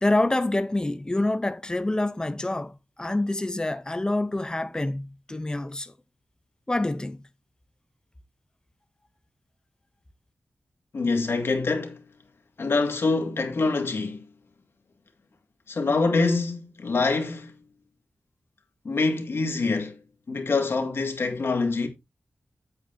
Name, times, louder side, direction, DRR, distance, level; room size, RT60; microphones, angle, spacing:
voice 1, 0.0-2.7 3.0-5.9 6.7-7.2, left 2 dB, 15° left, 0.7 m, -26 dB
voice 2, 10.9-12.0 12.6-14.2 15.7-17.5 18.8-20.0 20.3-21.9, left 3 dB, 65° left, 2.0 m, -25 dB
8.6 x 8.2 x 2.7 m
wide cardioid pair, 90°, 4 cm